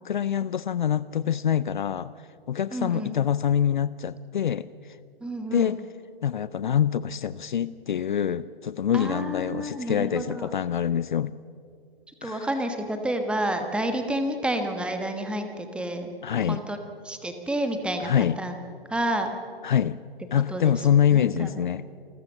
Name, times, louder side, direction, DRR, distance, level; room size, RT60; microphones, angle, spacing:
voice 1, 0.0-2.1 2.5-5.0 5.5-5.8 6.2-11.3 12.2-12.5 16.2-16.6 18.0-18.4 19.6-20.0 20.3-21.8, left 9 dB, 55° left, 18 dB, 0.6 m, -25 dB
voice 2, 2.7-3.1 5.2-5.7 8.9-10.5 12.2-16.1 16.5-16.8 17.0-18.6 18.9-19.3 20.5-20.7 21.1-21.7, right 1 dB, 5° right, 6 dB, 1.3 m, -30 dB
28.0 x 14.0 x 7.2 m, 2.3 s
figure-of-eight pair, 125°, 30 cm